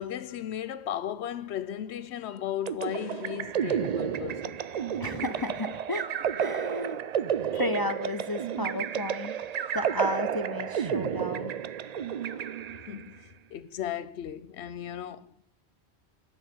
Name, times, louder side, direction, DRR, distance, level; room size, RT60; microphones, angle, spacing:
voice 1, 0.0-4.6 7.5-7.7 12.9-13.2 13.5-15.3, left 10 dB, 75° left, 1.0 m, -35 dB
sound 1, 2.7-13.1, right 8 dB, 55° right, 0.4 m, -31 dB
voice 2, 5.0-6.0 6.4-7.0 7.5-9.3 9.7-11.5, left 1 dB, 35° left, 0.4 m, -33 dB
11.0 x 5.5 x 8.3 m
omnidirectional pair, 1.2 m